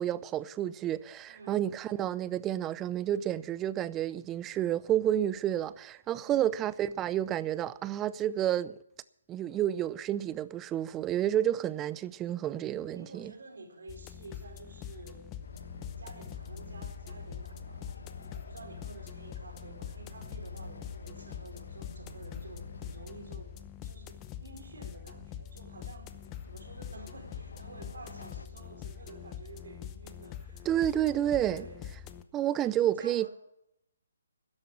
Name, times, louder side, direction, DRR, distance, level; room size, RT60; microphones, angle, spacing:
voice 1, 0.0-8.8 9.3-13.3 30.7-31.6 32.3-33.3, right 11 dB, 15° right, 0.5 m, -30 dB
voice 2, 1.3-1.7 6.2-6.6 12.9-15.4 16.0-26.1 26.4-31.8 32.5-33.3, right 2 dB, 75° right, 4.5 m, -50 dB
sound 1, 13.9-32.2, left 9 dB, 20° left, 0.7 m, -45 dB
Train, 15.4-23.9 25.7-28.5, left 3 dB, 80° left, 1.4 m, -47 dB
13.0 x 11.0 x 7.0 m
hypercardioid pair, 155°, 0 cm